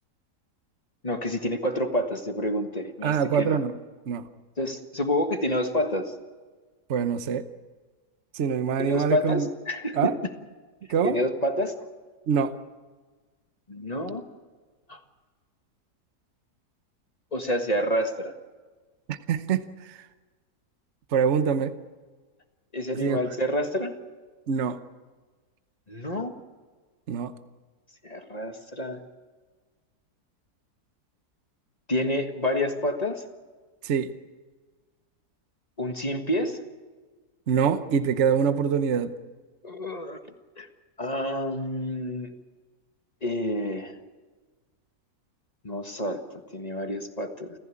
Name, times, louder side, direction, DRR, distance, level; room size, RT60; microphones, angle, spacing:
voice 1, 1.0-3.6 4.6-6.1 8.8-10.1 11.0-11.8 13.7-14.2 14.9-15.0 17.3-18.3 22.7-23.9 25.9-26.3 28.0-29.0 31.9-33.2 35.8-36.6 39.6-40.2 40.6-40.7 41.0-42.3 43.2-44.0 45.6-46.2 46.5-47.5, left 1 dB, 25° left, 6 dB, 1.6 m, -28 dB
voice 2, 3.0-3.7 4.1-4.3 6.9-7.4 8.3-9.5 9.9-10.1 10.9-11.2 12.3-12.6 19.1-20.1 21.1-21.8 22.9-23.2 24.5-24.8 27.1-27.3 33.8-34.1 37.5-39.1, right 7 dB, 50° right, 11 dB, 1.1 m, -24 dB
29.0 x 15.0 x 8.5 m, 1.4 s
omnidirectional pair, 1.7 m